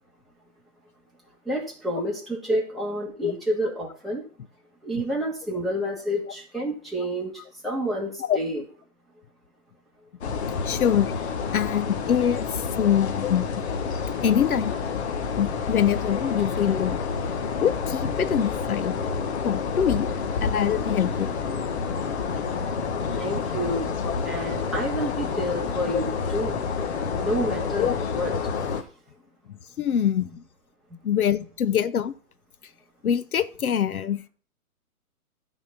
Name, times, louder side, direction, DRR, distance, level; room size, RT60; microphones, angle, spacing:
voice 1, 1.5-4.2 4.8-7.3 7.6-8.6 23.2-23.9 24.2-26.6 27.2-28.3, equal, ahead, -4 dB, 2.2 m, -29 dB
sound 1, 10.2-28.8, left 5 dB, 50° left, 1.5 m, -29 dB
voice 2, 10.6-11.1 11.5-13.5 14.2-14.8 15.4-17.0 17.6-19.0 19.4-20.1 20.4-21.4 24.0-24.1 25.9-26.0 27.8-27.9 29.8-30.3 31.0-32.1 33.0-34.3, left 9 dB, 75° left, 14 dB, 0.8 m, -24 dB
12.5 x 4.3 x 7.0 m, 0.42 s
hypercardioid pair, 150°, 44 cm